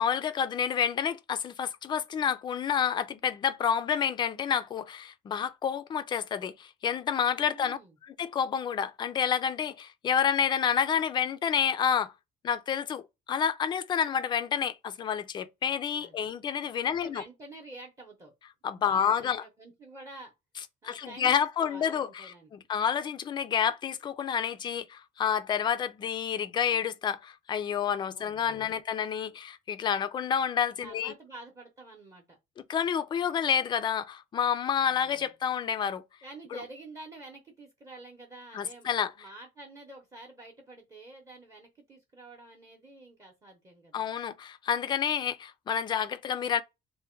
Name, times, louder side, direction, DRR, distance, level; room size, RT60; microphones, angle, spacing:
voice 1, 0.0-12.1 12.4-17.2 18.6-19.4 20.8-31.1 32.7-36.0 36.5-36.6 38.5-39.1 43.9-46.6, left 8 dB, 30° left, 0.4 m, -29 dB
voice 2, 7.5-8.0 16.0-16.3 16.8-18.3 18.8-20.3 20.8-22.5 28.1-28.8 30.8-32.4 34.9-35.3 36.2-44.1, right 2 dB, 20° right, 0.7 m, -48 dB
3.4 x 2.1 x 4.3 m
cardioid pair, 170°, 16 cm